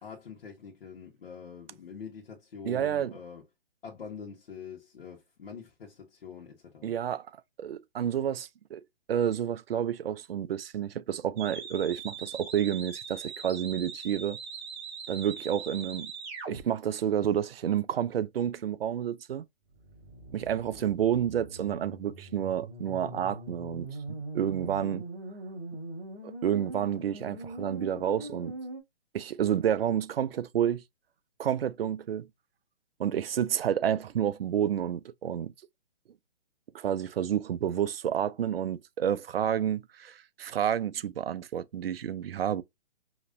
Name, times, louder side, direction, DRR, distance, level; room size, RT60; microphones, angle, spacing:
voice 1, 0.0-3.4 3.8-6.9 20.7-20.9, left 6 dB, 60° left, 1.4 m, -45 dB
voice 2, 2.6-3.1 6.8-7.3 7.6-8.8 9.1-14.4 15.1-16.1 16.5-19.4 20.3-25.0 26.4-28.5 29.1-30.8 31.4-32.3 33.0-35.5 36.7-42.6, right 9 dB, 60° right, 0.6 m, -30 dB
sound 1, 11.4-16.6 19.7-28.8, right 3 dB, 20° right, 2.1 m, -41 dB
5.1 x 3.0 x 2.6 m
hypercardioid pair, 150°, 32 cm